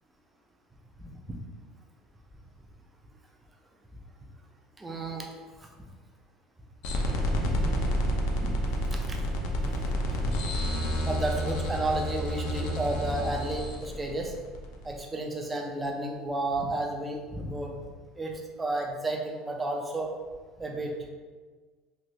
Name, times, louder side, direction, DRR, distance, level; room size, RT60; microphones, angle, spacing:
voice 1, 1.0-1.4 4.8-5.3 5.6-5.7 7.3-7.9 8.4-8.5 8.9-9.2 9.5-9.6 10.3-10.4 11.1-14.3 14.8-17.7 18.2-20.1 20.6-21.1, right 2 dB, 10° right, 1 dB, 0.4 m, -32 dB
sound 1, 6.8-15.0, equal, 70° left, 0.5 m, -29 dB
3.1 x 2.9 x 2.7 m, 1.4 s
cardioid pair, 165°, 0 cm